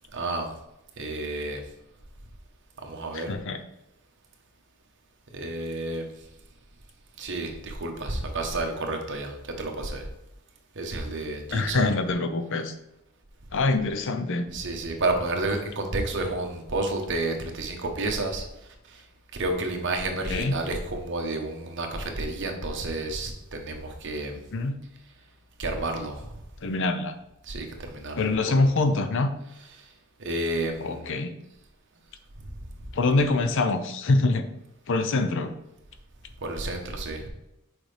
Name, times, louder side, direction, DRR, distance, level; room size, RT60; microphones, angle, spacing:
voice 1, 0.1-0.5 1.0-1.6 2.8-3.3 5.3-6.1 7.2-10.1 10.7-11.9 14.5-18.4 18.9-19.0 19.3-24.4 25.6-26.3 27.4-28.2 28.5-28.6 29.7-29.9 30.2-31.1 36.4-37.3, right 2 dB, 55° right, 3 dB, 1.1 m, -30 dB
voice 2, 3.1-3.6 11.5-12.7 13.5-14.5 20.3-20.6 24.5-24.8 26.6-27.1 28.2-29.3 30.8-31.3 32.9-34.4 34.9-35.5, left 3 dB, 60° left, 9 dB, 0.6 m, -24 dB
6.3 x 5.0 x 3.4 m, 0.86 s
head